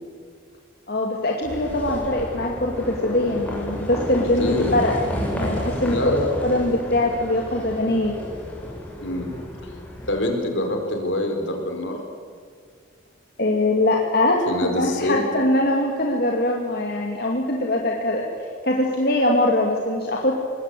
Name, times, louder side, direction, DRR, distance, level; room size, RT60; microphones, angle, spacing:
voice 1, 0.9-6.2 6.4-8.2 13.4-18.2 18.6-20.3, left 1 dB, 50° left, -1 dB, 2.6 m, -22 dB
Livestock farm animals working animals, 1.4-10.1, equal, 5° left, 7.2 m, -31 dB
voice 2, 4.4-4.8 5.9-6.3 9.0-9.3 10.1-12.0 14.5-15.2, left 1 dB, 70° left, 3 dB, 4.6 m, -25 dB
25.0 x 20.5 x 8.5 m, 2.1 s
head